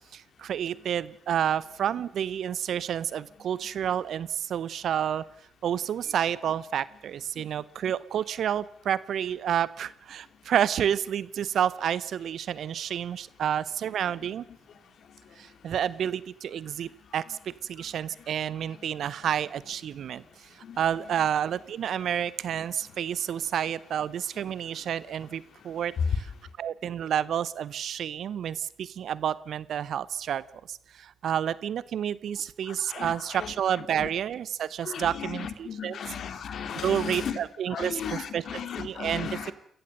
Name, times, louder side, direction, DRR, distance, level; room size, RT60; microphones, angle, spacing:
voice 1, 0.1-5.2 5.6-14.5 15.4-20.2 20.5-26.3 26.6-30.4 30.7-36.0 36.8-38.4 38.8-39.5, right 9 dB, 60° right, 19 dB, 0.8 m, -30 dB
voice 2, 32.7-33.5 34.0-34.1 34.8-37.4 37.7-39.5, left 7 dB, 60° left, 10 dB, 2.3 m, -36 dB
28.0 x 15.0 x 6.6 m, 0.67 s
hypercardioid pair, 45°, 0 cm